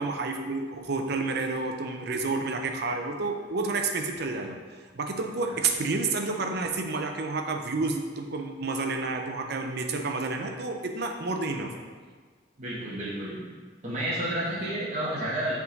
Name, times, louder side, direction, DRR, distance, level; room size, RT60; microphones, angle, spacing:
voice 1, 0.0-4.6 4.9-11.7, right 3 dB, 60° right, 4 dB, 0.6 m, -30 dB
voice 2, 12.6-13.4 13.8-15.6, right 1 dB, 40° right, -6 dB, 1.2 m, -31 dB
7.1 x 3.7 x 4.0 m, 1.5 s
head